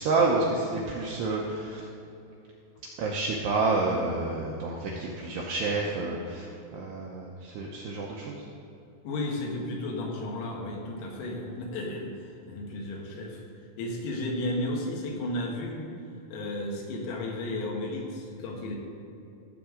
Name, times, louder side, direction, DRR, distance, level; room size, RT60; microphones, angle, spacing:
voice 1, 0.0-1.9 3.0-8.5, right 3 dB, 90° right, -2 dB, 2.4 m, -29 dB
voice 2, 9.0-13.4 13.8-15.9 16.3-18.8, left 1 dB, 85° left, -1 dB, 4.2 m, -33 dB
15.5 x 7.3 x 3.8 m, 2.8 s
omnidirectional pair, 5.9 m